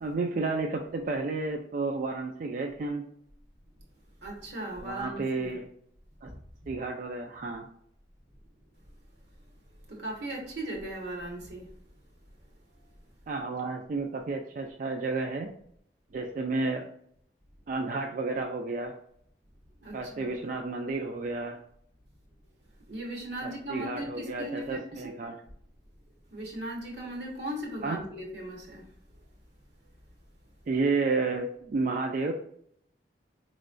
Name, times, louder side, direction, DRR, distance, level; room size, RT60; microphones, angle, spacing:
voice 1, 0.0-3.0 4.8-5.7 6.2-6.3 6.7-7.7 13.3-15.5 16.1-16.8 17.7-18.9 19.9-21.6 23.4-25.3 27.8-28.0 30.7-32.3, right 3 dB, 50° right, 3 dB, 0.3 m, -31 dB
voice 2, 4.2-5.6 6.2-6.3 9.9-11.7 19.8-20.3 22.9-25.0 26.3-28.8, right 1 dB, 80° right, -1 dB, 1.2 m, -38 dB
4.5 x 3.1 x 2.5 m, 0.68 s
head